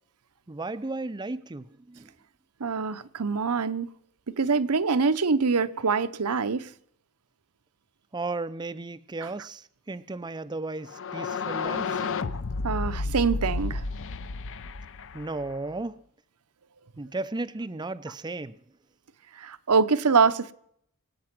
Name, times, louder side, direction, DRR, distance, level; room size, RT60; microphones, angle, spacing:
voice 1, 0.5-2.1 8.1-12.0 15.1-16.0 17.0-18.6, right 2 dB, 20° right, 0.5 m, -35 dB
voice 2, 2.6-3.9 4.4-6.7 9.2-9.3 12.6-13.8 19.4-20.5, right 5 dB, 85° right, 0.8 m, -24 dB
sound 1, 10.9-15.7, left 4 dB, 60° left, 0.7 m, -31 dB
23.0 x 8.8 x 6.0 m
head